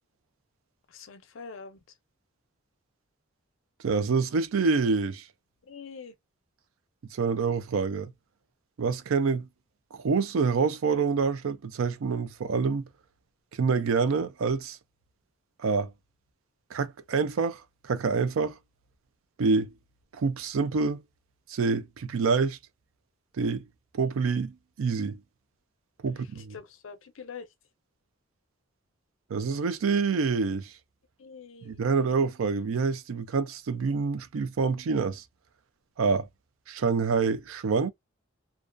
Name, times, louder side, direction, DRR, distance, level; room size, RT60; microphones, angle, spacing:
voice 1, 0.9-1.8 5.7-6.1 26.1-26.2 26.5-27.5 31.2-32.0, left 5 dB, 75° left, 0.5 m, -44 dB
voice 2, 3.8-5.2 7.1-8.1 8.8-9.5 9.9-12.9 13.6-14.8 15.6-15.9 16.7-18.6 19.4-19.7 20.1-21.0 21.5-22.6 23.4-23.6 23.9-25.2 26.0-26.5 29.3-30.7 31.6-35.2 36.0-36.3 36.7-37.9, right 5 dB, 90° right, 0.4 m, -27 dB
2.3 x 2.2 x 2.4 m
head